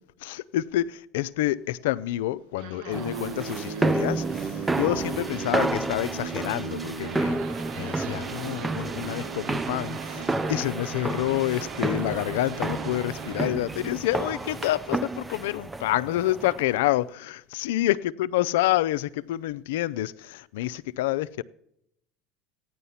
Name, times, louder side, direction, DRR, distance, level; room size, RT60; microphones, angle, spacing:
voice 1, 0.2-7.4 7.7-21.4, left 15 dB, 80° left, 0.5 m, -28 dB
sound 1, 2.4-14.7, right 6 dB, 80° right, 1.3 m, -38 dB
sound 2, 2.9-16.8, right 2 dB, 15° right, 0.5 m, -31 dB
sound 3, 7.0-13.5, right 10 dB, 55° right, 0.7 m, -41 dB
15.0 x 10.0 x 5.7 m
hypercardioid pair, 90°, 0 cm